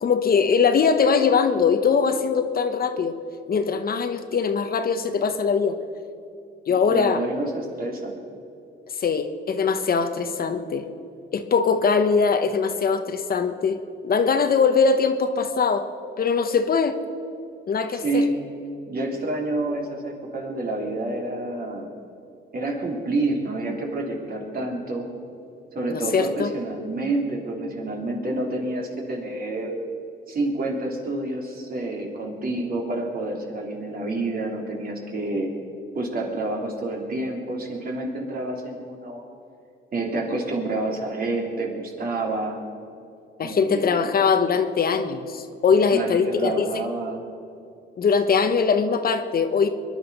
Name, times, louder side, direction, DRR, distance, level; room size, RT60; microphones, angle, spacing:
voice 1, 0.0-3.1 3.5-5.8 6.7-7.2 9.0-10.9 11.3-13.8 14.0-15.9 16.2-17.0 17.7-18.3 25.9-26.5 43.4-46.8 48.0-49.7, left 5 dB, 50° left, 8 dB, 1.1 m, -21 dB
voice 2, 6.9-8.1 18.0-18.4 18.9-21.9 22.5-25.1 25.7-29.8 30.3-35.5 35.9-39.2 39.9-42.6 43.4-44.1 45.9-47.3, right 2 dB, 50° right, 0 dB, 3.2 m, -28 dB
23.0 x 11.0 x 5.4 m, 2.6 s
cardioid pair, 90°, 20 cm